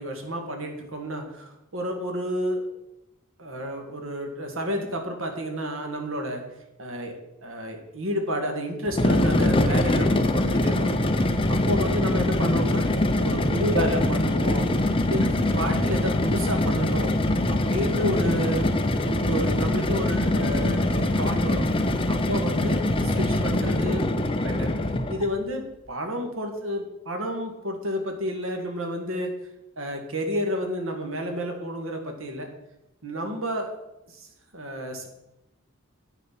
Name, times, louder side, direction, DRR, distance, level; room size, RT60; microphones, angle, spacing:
voice 1, 0.0-2.6 3.4-6.4 6.8-7.1 7.4-11.0 11.7-14.7 15.1-18.7 19.0-21.6 22.1-24.1 24.4-24.7 25.1-29.3 29.8-32.5 33.0-33.7 34.5-35.1, equal, 70° right, 3 dB, 1.9 m, -30 dB
sound 1, 8.9-25.3, left 1 dB, 25° left, 0.7 m, -23 dB
9.3 x 6.3 x 6.0 m, 0.92 s
head